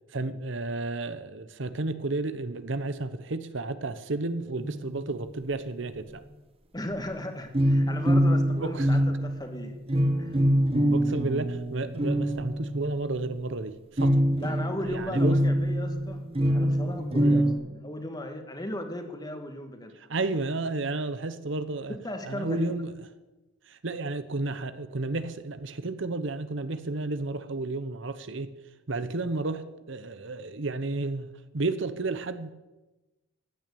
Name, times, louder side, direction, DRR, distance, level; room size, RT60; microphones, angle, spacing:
voice 1, 0.1-6.2 8.6-8.9 10.9-14.2 14.8-15.4 17.2-17.5 20.1-22.0 22.3-22.9 23.7-28.5 28.9-31.3 31.5-32.5, right 2 dB, 60° right, 12 dB, 0.9 m, -32 dB
sound 1, 4.6-5.2 7.5-13.3 14.0-17.5, equal, 30° right, 1.5 m, -24 dB
voice 2, 6.7-9.8 10.2-10.5 14.4-16.2 16.5-19.9 21.9-22.7, left 1 dB, 20° left, 6 dB, 1.7 m, -36 dB
15.0 x 9.3 x 8.6 m, 1.1 s
head